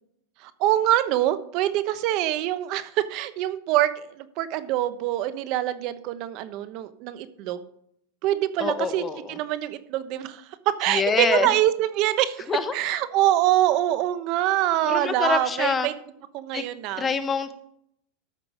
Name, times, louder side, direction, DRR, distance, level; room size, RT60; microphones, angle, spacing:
voice 1, 0.4-7.7 8.2-15.9 16.3-17.1, right 13 dB, 50° right, 13 dB, 1.0 m, -25 dB
voice 2, 8.6-9.4 10.9-11.5 12.5-12.7 14.8-15.9 16.5-16.6 17.0-17.6, left 5 dB, 20° left, 9 dB, 1.1 m, -26 dB
13.5 x 6.0 x 4.9 m, 0.70 s
supercardioid pair, 135°, 0 cm